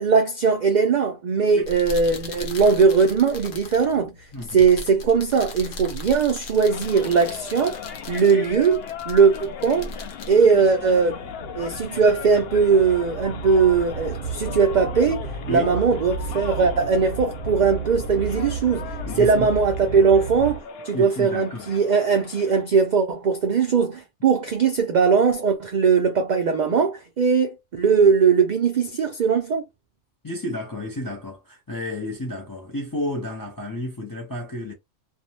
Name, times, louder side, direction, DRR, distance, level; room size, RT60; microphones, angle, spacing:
voice 1, 0.0-4.1 4.5-7.8 8.1-9.9 10.3-11.2 11.6-20.6 20.8-29.6, right 5 dB, 75° right, 0.4 m, -20 dB
sound 1, 1.5-11.3, left 2 dB, 80° left, 1.1 m, -38 dB
voice 2, 4.3-4.7 15.4-15.7 19.0-19.5 20.9-21.7 30.2-34.7, left 1 dB, 30° left, 0.4 m, -31 dB
sound 2, 6.4-22.6, left 7 dB, 65° left, 0.7 m, -38 dB
sound 3, 10.2-20.8, right 4 dB, 55° right, 0.8 m, -34 dB
2.6 x 2.0 x 2.9 m
omnidirectional pair, 1.3 m